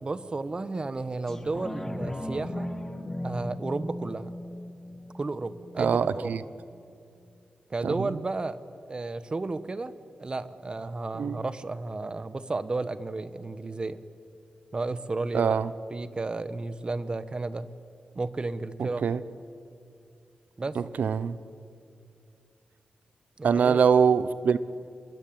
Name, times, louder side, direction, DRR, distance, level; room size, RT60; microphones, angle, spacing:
voice 1, 0.0-2.7 3.2-4.3 5.1-6.5 7.7-8.6 8.9-9.9 10.2-14.0 14.7-15.5 15.9-17.7 18.1-19.1 20.6-20.8 23.4-23.8, right 3 dB, 35° right, 1.3 m, -33 dB
sound 1, 1.3-6.3 6.7-6.8, left 1 dB, 15° left, 2.4 m, -37 dB
voice 2, 5.8-6.4 7.8-8.1 11.1-11.4 15.3-15.7 19.0-19.2 21.0-21.4 23.4-24.6, right 6 dB, 80° right, 0.9 m, -23 dB
28.0 x 22.0 x 8.9 m
cardioid pair, 75°, 3 cm